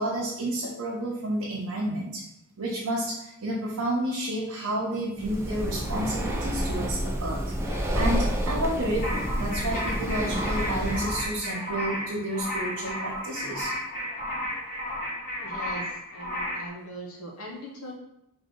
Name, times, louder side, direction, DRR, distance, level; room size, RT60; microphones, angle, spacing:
voice 1, 0.0-2.2 2.6-13.7, right 1 dB, 85° right, -5 dB, 0.8 m, -30 dB
Breathing, 5.2-11.3, equal, 10° right, 0.4 m, -29 dB
sound 1, 9.0-16.7, equal, 35° left, 1.1 m, -33 dB
voice 2, 15.4-17.9, equal, 75° left, -2 dB, 1.0 m, -40 dB
3.8 x 2.7 x 3.7 m, 0.81 s
head